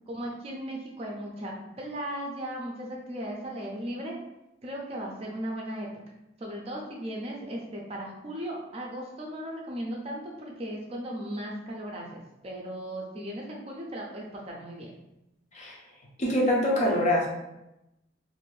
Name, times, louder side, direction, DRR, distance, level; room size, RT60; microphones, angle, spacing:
voice 1, 0.1-4.2 4.6-5.9 6.4-14.9, right 1 dB, 30° right, -1 dB, 0.4 m, -37 dB
voice 2, 16.2-17.3, left 1 dB, 35° left, -2 dB, 0.6 m, -24 dB
2.5 x 2.5 x 3.1 m, 0.91 s
head